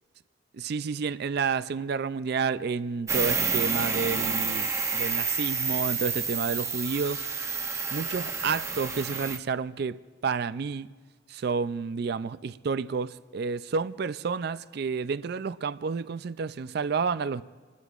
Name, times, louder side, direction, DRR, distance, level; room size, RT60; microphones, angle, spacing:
voice 1, 0.5-7.3 7.9-10.9 11.3-17.4, right 5 dB, 50° right, 0.4 m, -30 dB
sound 1, 3.1-9.4, right 5 dB, 15° right, 0.6 m, -29 dB
27.5 x 20.5 x 2.5 m
head